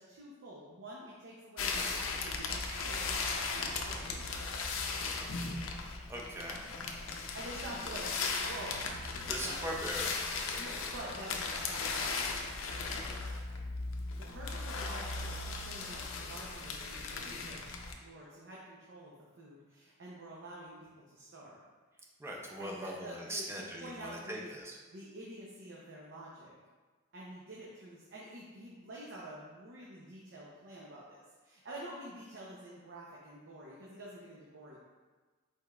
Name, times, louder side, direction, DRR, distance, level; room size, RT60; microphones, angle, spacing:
voice 1, 0.0-4.3 7.0-8.1 8.4-8.9 9.4-9.6 10.6-12.4 13.1-13.5 14.3-21.6 22.6-24.5 24.9-26.5 27.1-34.8, right 1 dB, 60° right, -6 dB, 0.7 m, -48 dB
sound 1, 1.6-17.9, left 4 dB, 70° left, 0.5 m, -37 dB
voice 2, 6.1-6.6 9.3-10.3 22.2-24.8, equal, 10° right, -1 dB, 0.6 m, -40 dB
5.0 x 4.4 x 2.4 m, 1.3 s
head